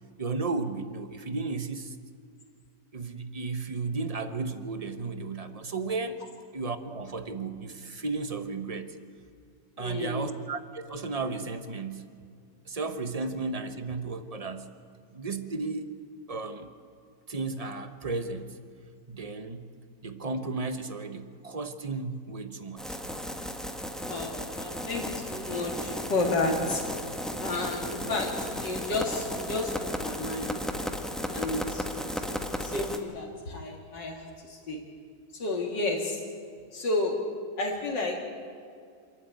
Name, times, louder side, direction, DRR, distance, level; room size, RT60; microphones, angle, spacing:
voice 1, 0.2-2.0 2.9-6.2 6.5-8.9 9.8-12.1 12.7-14.7 15.1-15.9 16.3-16.7 17.3-18.6 19.1-19.7 20.0-23.0, right 3 dB, 30° right, 9 dB, 0.8 m, -34 dB
voice 2, 9.8-10.3 24.0-26.9 27.4-30.6 31.3-32.2 32.6-34.9 35.4-36.2 36.7-37.3 37.6-38.3, left 2 dB, 80° left, 0 dB, 2.7 m, -31 dB
sound 1, 22.8-33.0, equal, ahead, 1.0 m, -35 dB
26.5 x 12.0 x 9.2 m, 2.2 s
omnidirectional pair, 1.9 m